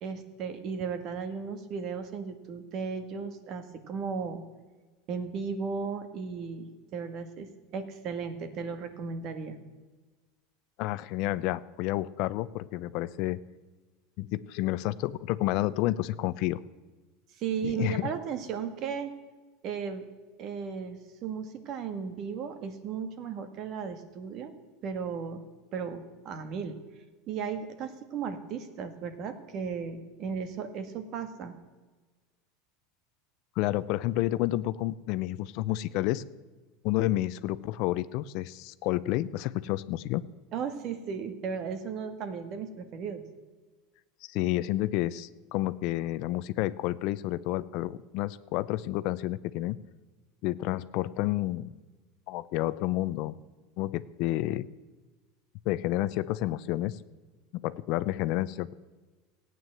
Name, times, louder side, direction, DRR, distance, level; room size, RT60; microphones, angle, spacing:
voice 1, 0.0-4.4 5.1-9.6 17.4-19.1 19.6-20.1 20.4-24.5 24.8-25.4 25.7-26.8 27.3-31.5 40.5-43.2, right 6 dB, 45° right, 9 dB, 1.8 m, -35 dB
voice 2, 10.8-13.4 14.2-16.6 17.6-18.1 33.6-36.2 36.8-40.2 44.2-49.8 50.4-51.7 52.3-53.4 53.8-54.7 55.7-57.0 57.5-58.7, left 16 dB, 60° left, 16 dB, 0.6 m, -30 dB
15.5 x 9.3 x 7.7 m, 1.3 s
supercardioid pair, 130°, 0 cm